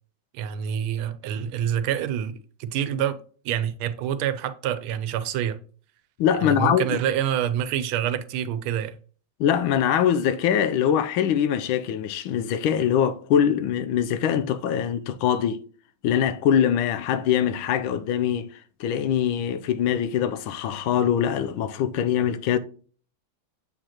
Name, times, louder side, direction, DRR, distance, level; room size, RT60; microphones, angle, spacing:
voice 1, 0.3-3.2 3.4-5.6 6.4-9.0, right 9 dB, 85° right, 1.5 m, -27 dB
voice 2, 6.2-7.0 9.4-15.6 16.0-18.5 18.8-22.6, left 9 dB, 80° left, 1.4 m, -23 dB
7.6 x 4.8 x 2.9 m
omnidirectional pair, 2.3 m